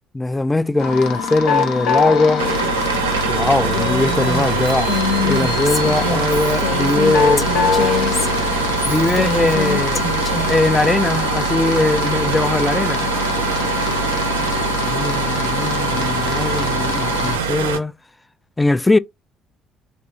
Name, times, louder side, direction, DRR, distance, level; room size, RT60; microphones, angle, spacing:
voice 1, 0.1-2.4 3.3-4.9 5.2-7.5 8.8-10.0 10.5-13.1 14.8-17.9 18.6-19.0, left 2 dB, 15° left, 0.3 m, -20 dB
sound 1, 0.8-17.4, left 6 dB, 70° left, 0.5 m, -24 dB
sound 2, 2.4-17.8, right 5 dB, 90° right, 0.4 m, -23 dB
Female speech woman speaking, 3.6-10.7, left 3 dB, 40° left, 0.9 m, -25 dB
3.0 x 2.6 x 2.7 m
hypercardioid pair, 55°, 0 cm